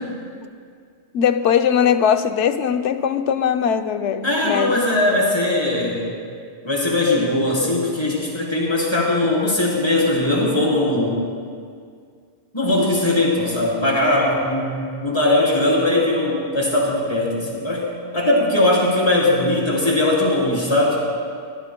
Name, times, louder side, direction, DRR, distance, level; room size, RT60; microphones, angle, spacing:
voice 1, 1.1-4.8, left 8 dB, 80° left, 8 dB, 1.0 m, -20 dB
voice 2, 4.2-6.1 6.6-11.2 12.5-17.9 18.1-21.0, left 1 dB, 20° left, -5 dB, 3.7 m, -20 dB
22.5 x 18.5 x 2.2 m, 2.1 s
omnidirectional pair, 1.2 m